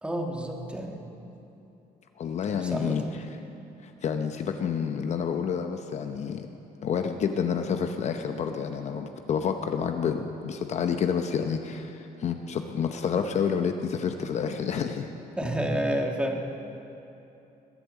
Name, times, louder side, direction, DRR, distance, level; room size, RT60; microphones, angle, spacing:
voice 1, 0.0-1.1 2.6-3.1 15.4-16.4, right 1 dB, 5° right, 1 dB, 1.5 m, -29 dB
voice 2, 2.2-3.0 3.8-6.5 6.8-15.1, left 7 dB, 45° left, 6 dB, 0.8 m, -29 dB
20.0 x 8.6 x 8.2 m, 2.8 s
cardioid pair, 150°, 16 cm